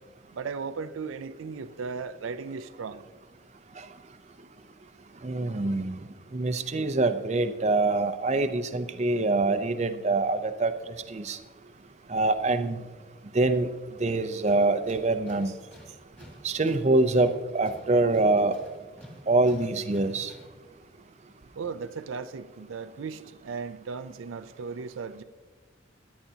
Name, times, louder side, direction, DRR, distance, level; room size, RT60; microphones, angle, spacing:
voice 1, 0.3-3.2 11.6-11.7 20.9-21.0 21.6-25.2, right 5 dB, 90° right, 0.4 m, -36 dB
voice 2, 5.2-6.0 6.3-10.7 11.1-11.4 12.1-12.8 13.3-13.7 14.0-15.5 16.4-18.5 19.3-20.3, right 2 dB, 35° right, 0.5 m, -25 dB
Tools, 14.1-20.6, equal, 10° left, 2.1 m, -51 dB
16.0 x 10.5 x 2.8 m
head